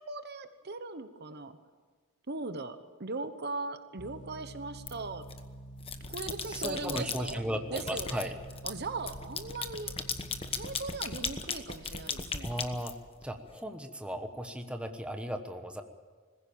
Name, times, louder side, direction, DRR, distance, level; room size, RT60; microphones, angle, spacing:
voice 1, 0.0-1.5 2.3-5.2 6.1-7.4 7.7-8.3 8.6-9.9 10.5-12.5, right 3 dB, 50° right, 10 dB, 1.2 m, -39 dB
sound 1, 4.0-10.8, right 1 dB, 55° left, 1.7 m, -48 dB
sound 2, 4.8-5.4 5.8-7.4 7.8-13.5, left 5 dB, 25° left, 1.1 m, -37 dB
voice 2, 6.4-8.3 12.4-12.9 13.2-15.8, equal, 5° right, 5 dB, 1.2 m, -36 dB
20.5 x 16.0 x 8.7 m, 1.5 s
head